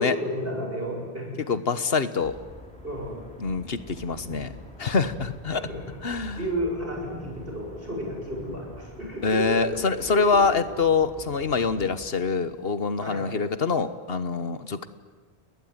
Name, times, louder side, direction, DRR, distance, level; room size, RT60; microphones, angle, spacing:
voice 1, 0.0-1.4 2.8-3.2 4.2-4.4 4.9-5.0 5.6-9.7 10.1-10.4 13.0-13.2, equal, 65° right, 0 dB, 7.4 m, -32 dB
voice 2, 1.5-2.4 3.4-4.5 4.8-5.6 6.0-6.4 9.2-14.9, left 4 dB, 70° left, 12 dB, 1.5 m, -25 dB
sound 1, 2.2-12.1, left 1 dB, 5° left, 6.1 m, -46 dB
30.0 x 20.0 x 9.7 m, 1.4 s
omnidirectional pair, 1.0 m